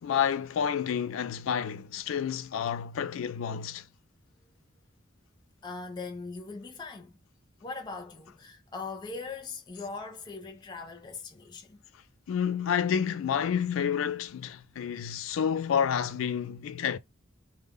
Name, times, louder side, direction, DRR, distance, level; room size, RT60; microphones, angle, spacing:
voice 1, 0.0-3.9 12.3-17.0, left 8 dB, 85° left, 0.3 m, -29 dB
voice 2, 5.6-7.2 7.6-11.8, left 4 dB, 20° left, 0.4 m, -40 dB
2.1 x 2.0 x 3.5 m
head